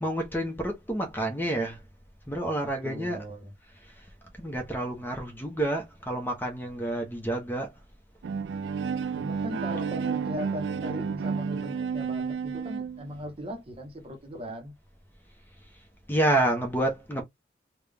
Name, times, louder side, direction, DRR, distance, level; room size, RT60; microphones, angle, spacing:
voice 1, 0.0-1.8 2.3-3.2 4.4-7.7 16.1-17.2, right 1 dB, 10° left, 0.9 m, -29 dB
voice 2, 2.6-3.5 9.2-14.7, equal, 30° right, 0.9 m, -38 dB
Bowed string instrument, 8.2-13.1, right 6 dB, 75° right, 0.3 m, -31 dB
3.7 x 2.3 x 3.4 m
head